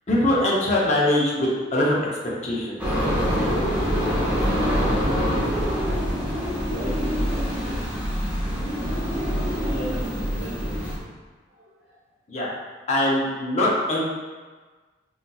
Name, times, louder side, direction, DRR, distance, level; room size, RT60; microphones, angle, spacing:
voice 1, 0.1-2.0 2.4-2.7 12.3-12.5 12.9-14.0, left 1 dB, 35° left, -5 dB, 0.6 m, -22 dB
sound 1, 2.8-11.0, equal, 5° right, 0.8 m, -25 dB
voice 2, 6.6-7.8 9.6-11.1 11.6-12.0, equal, 85° right, -11 dB, 0.8 m, -35 dB
4.0 x 2.4 x 2.3 m, 1.4 s
head